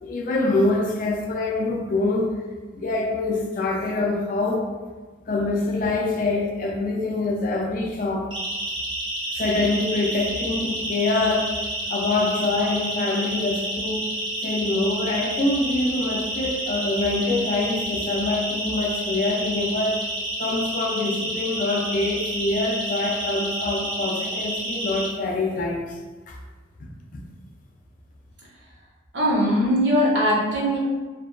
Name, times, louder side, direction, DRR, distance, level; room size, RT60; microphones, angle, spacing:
voice 1, 0.0-2.3 2.7-4.6 5.3-8.3 9.3-11.5 11.9-14.1 14.4-20.0 20.4-26.0 26.3-26.4 26.8-27.2, left 2 dB, 45° left, 0 dB, 0.3 m, -25 dB
Siren, 8.3-25.1, right 1 dB, 25° right, 0.4 m, -30 dB
voice 2, 29.1-30.8, equal, 65° right, -4 dB, 0.7 m, -20 dB
2.6 x 2.1 x 2.3 m, 1.3 s
head